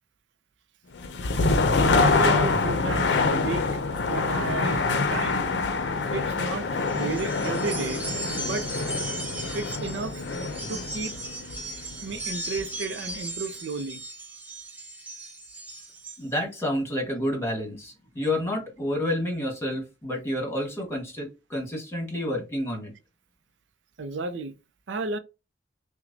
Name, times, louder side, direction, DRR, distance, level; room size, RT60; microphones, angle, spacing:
sound 1, 1.0-12.8, left 3 dB, 75° left, 0.5 m, -26 dB
voice 1, 1.9-3.6 3.9-5.5 6.1-8.0 8.4-8.7 9.5-10.2 10.7-11.1 12.0-14.0 24.0-24.5 24.9-25.2, right 3 dB, 90° right, 0.5 m, -33 dB
sound 2, 6.8-16.2, right 2 dB, 10° right, 0.6 m, -37 dB
voice 2, 16.2-22.9, left 1 dB, 15° left, 1.4 m, -29 dB
5.8 x 2.2 x 2.6 m
head